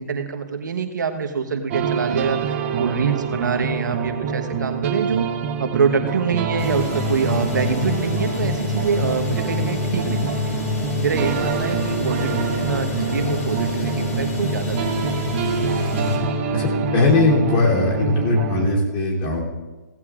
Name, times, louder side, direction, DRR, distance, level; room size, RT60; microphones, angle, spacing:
voice 1, 0.0-5.3 5.6-10.6 11.0-15.4, right 5 dB, 85° right, 5 dB, 1.2 m, -25 dB
sound 1, 1.7-18.7, right 5 dB, 40° right, 1.2 m, -26 dB
sound 2, 6.6-16.2, left 5 dB, 50° left, 3.9 m, -28 dB
voice 2, 16.5-19.4, left 2 dB, 35° left, -2 dB, 3.2 m, -19 dB
16.5 x 15.5 x 2.5 m, 1.2 s
hypercardioid pair, 150°, 10 cm